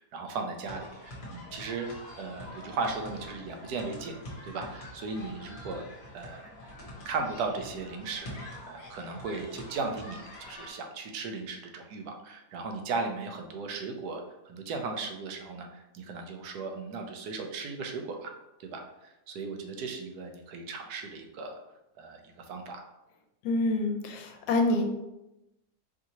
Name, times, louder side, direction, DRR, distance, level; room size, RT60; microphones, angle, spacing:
voice 1, 0.0-1.9 2.2-4.2 4.4-5.8 6.1-6.5 7.0-8.3 8.7-18.3 18.6-21.6 22.0-22.2 22.5-22.8, right 4 dB, 80° right, 4 dB, 1.1 m, -36 dB
sound 1, 0.6-10.7, left 1 dB, 45° left, 1.3 m, -45 dB
voice 2, 23.4-24.9, left 2 dB, 80° left, 4 dB, 1.2 m, -27 dB
4.8 x 2.7 x 2.9 m, 0.95 s
omnidirectional pair, 1.7 m